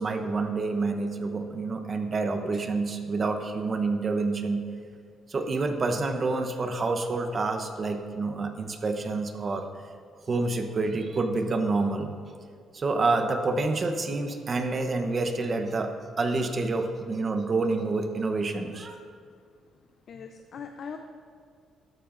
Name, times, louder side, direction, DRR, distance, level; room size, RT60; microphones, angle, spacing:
voice 1, 0.0-4.6 5.3-9.7 10.3-12.1 12.7-15.9 16.2-19.0, right 3 dB, 40° right, 6 dB, 0.9 m, -28 dB
voice 2, 20.1-21.0, left 6 dB, 60° left, 5 dB, 0.6 m, -40 dB
12.5 x 12.0 x 2.6 m, 2.1 s
cardioid pair, 90°, 0 cm